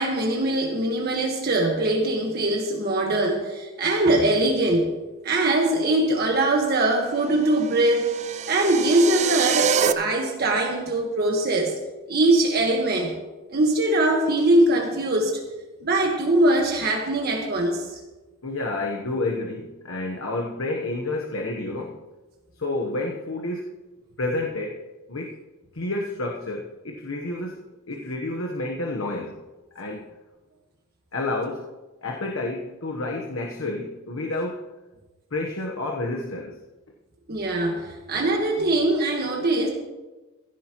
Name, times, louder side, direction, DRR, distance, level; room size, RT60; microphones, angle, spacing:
voice 1, 0.0-4.9 5.2-8.1 8.5-11.7 12.1-13.2 13.5-15.4 15.8-17.9 37.3-39.7, right 1 dB, 50° right, 0 dB, 1.5 m, -22 dB
sound 1, 7.4-9.9, right 7 dB, 35° right, 0.5 m, -26 dB
voice 2, 18.4-22.0 22.6-23.7 24.2-24.8 25.1-25.3 25.7-29.4 29.7-30.0 31.1-31.7 32.0-34.7 35.3-36.6, left 2 dB, 75° left, 0 dB, 1.1 m, -30 dB
15.5 x 13.5 x 3.0 m, 1.2 s
head